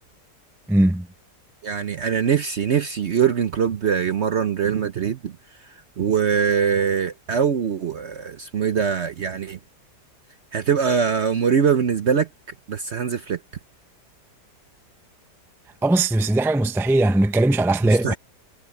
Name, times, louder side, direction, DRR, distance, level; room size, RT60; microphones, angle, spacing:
voice 1, 0.7-1.1 15.8-18.2, right 2 dB, 5° right, 0.5 m, -19 dB
voice 2, 1.6-5.3 6.0-9.6 10.5-12.3 12.7-13.4 17.9-18.2, right 7 dB, 55° right, 0.8 m, -22 dB
omnidirectional pair, 1.8 m